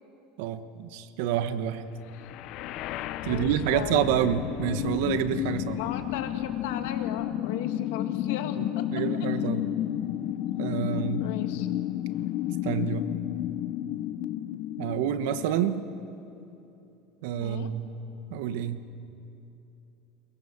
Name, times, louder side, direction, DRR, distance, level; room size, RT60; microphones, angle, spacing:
voice 1, 0.4-1.8 3.2-5.8 8.9-9.7 10.6-11.3 12.6-13.1 14.8-15.9 17.2-17.9 18.3-18.8, right 10 dB, 75° right, 11 dB, 1.1 m, -28 dB
sound 1, 2.1-16.1, left 13 dB, 50° left, 0.6 m, -31 dB
voice 2, 3.3-4.1 5.8-8.6 9.4-9.5 11.2-11.7 17.4-17.7, left 10 dB, 80° left, 6 dB, 1.9 m, -37 dB
22.5 x 20.5 x 7.2 m, 2.8 s
cardioid pair, 155°, 0 cm